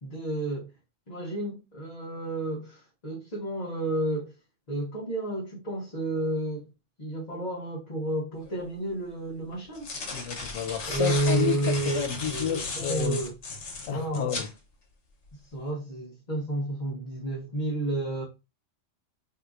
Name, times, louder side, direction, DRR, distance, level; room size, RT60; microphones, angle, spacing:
voice 1, 0.0-0.7 1.1-4.3 4.7-6.7 7.0-10.1 10.9-13.3 13.9-14.3 15.5-18.2, right 1 dB, 35° left, 0.9 m, -31 dB
sound 1, 8.5-8.6 9.5-14.5, left 3 dB, 65° left, 1.2 m, -36 dB
voice 2, 10.1-13.2 13.9-14.5, left 9 dB, 90° left, 1.0 m, -31 dB
3.6 x 2.9 x 2.3 m
omnidirectional pair, 1.3 m